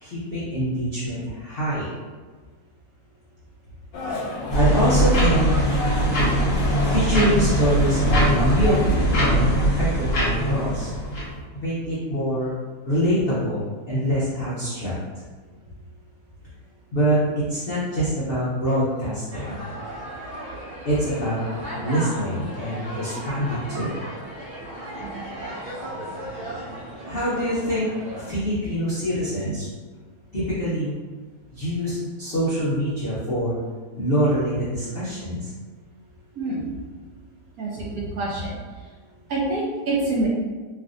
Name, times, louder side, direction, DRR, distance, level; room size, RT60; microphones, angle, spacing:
voice 1, 0.0-1.9 4.5-5.4 6.8-9.2 9.6-10.9 11.5-12.5 12.9-15.0 16.9-19.6 20.9-21.4 21.7-24.0 27.0-27.9 28.1-29.6 30.3-30.9 31.5-33.6 34.0-35.5, equal, 70° left, -9 dB, 0.5 m, -25 dB
sound 1, 3.9-9.0, left 2 dB, 90° left, 1.3 m, -31 dB
sound 2, 4.5-11.3, right 1 dB, 50° left, 1.2 m, -21 dB
sound 3, 19.3-28.3, right 1 dB, 45° right, 1.1 m, -36 dB
voice 2, 36.4-36.7 37.6-38.6 39.3-40.3, right 2 dB, 70° right, -5 dB, 0.9 m, -26 dB
3.3 x 2.5 x 2.5 m, 1.4 s
omnidirectional pair, 1.9 m